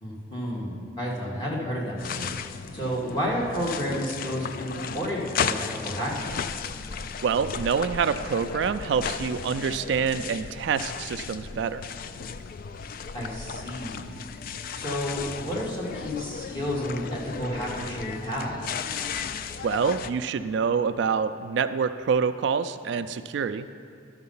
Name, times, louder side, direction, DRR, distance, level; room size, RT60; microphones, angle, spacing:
voice 1, 0.0-2.3 2.7-6.3 13.1-14.1 14.7-18.6, equal, 25° left, -5 dB, 1.9 m, -31 dB
sound 1, 2.0-20.1, left 6 dB, 50° left, 0.3 m, -35 dB
voice 2, 7.2-11.9 19.6-23.7, right 6 dB, 65° right, 11 dB, 0.3 m, -26 dB
11.5 x 6.6 x 5.5 m, 2.4 s
head